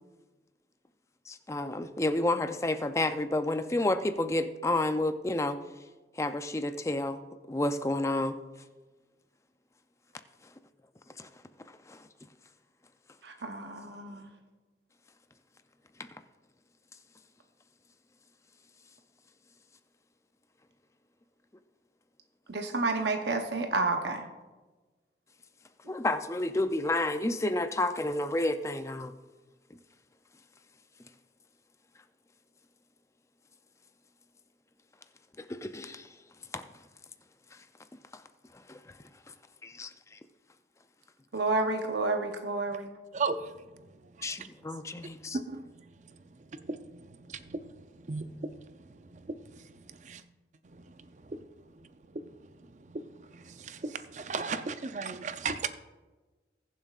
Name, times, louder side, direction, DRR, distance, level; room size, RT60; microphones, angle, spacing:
voice 1, 1.3-5.6 6.2-7.2 7.5-8.3 11.2-11.3 11.9-12.0 16.0-16.1 25.9-29.1 35.4-36.1 36.5-36.7 38.1-38.2 38.7-38.8 39.6-40.2 44.2-45.4, left 2 dB, 15° left, 0.4 m, -30 dB
voice 2, 13.2-14.3 22.5-24.3 25.8-25.9 41.3-42.9, right 3 dB, 70° right, 0.8 m, -30 dB
voice 3, 43.1-44.5 45.3-50.2 50.6-51.4 51.7-55.7, right 4 dB, 40° right, 0.5 m, -38 dB
20.5 x 7.3 x 2.4 m
head